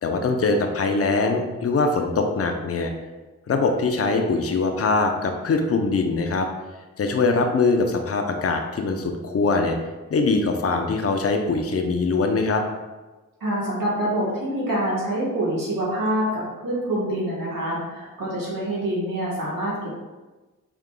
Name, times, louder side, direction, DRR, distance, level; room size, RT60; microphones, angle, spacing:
voice 1, 0.0-2.9 3.5-6.5 7.0-9.8 10.1-12.6, left 3 dB, 45° left, 4 dB, 0.6 m, -22 dB
voice 2, 13.4-19.9, right 1 dB, 70° right, -6 dB, 1.4 m, -26 dB
4.7 x 3.5 x 2.2 m, 1.2 s
cardioid pair, 40°, 34 cm